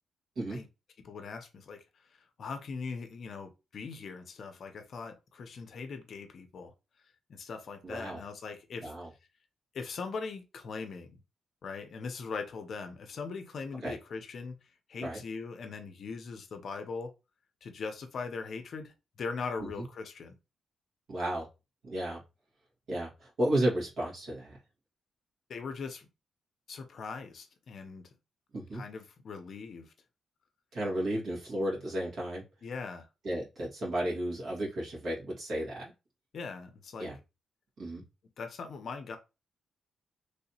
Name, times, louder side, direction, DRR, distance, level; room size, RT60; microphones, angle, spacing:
voice 1, 1.0-6.7 7.3-8.9 9.7-11.2 11.6-14.6 14.9-17.1 17.6-20.3 25.5-26.1 26.7-28.1 28.7-29.9 32.6-33.1 36.3-37.1 38.0-38.1 38.4-39.2, left 4 dB, 50° left, 0.5 m, -40 dB
voice 2, 7.8-8.2 8.8-9.1 13.8-13.9 15.0-15.2 19.6-19.7 21.1-21.5 21.8-22.2 22.9-24.6 28.5-28.8 30.7-32.4 33.2-35.9 37.0-37.2 37.8-38.0, right 1 dB, 60° right, 1.8 m, -33 dB
3.2 x 2.7 x 2.7 m
wide cardioid pair, 160°, 0 cm